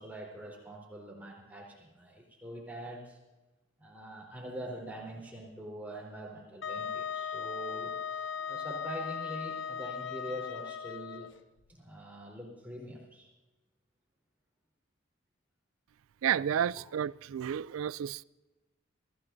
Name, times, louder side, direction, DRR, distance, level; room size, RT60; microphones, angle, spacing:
voice 1, 0.0-3.2 3.8-11.3 11.7-13.3 16.8-16.9, right 1 dB, 10° right, 3.8 m, -44 dB
Wind instrument woodwind instrument, 6.6-11.3, left 7 dB, 60° left, 0.5 m, -37 dB
voice 2, 16.2-18.2, right 9 dB, 90° right, 0.4 m, -31 dB
24.0 x 16.0 x 2.7 m
head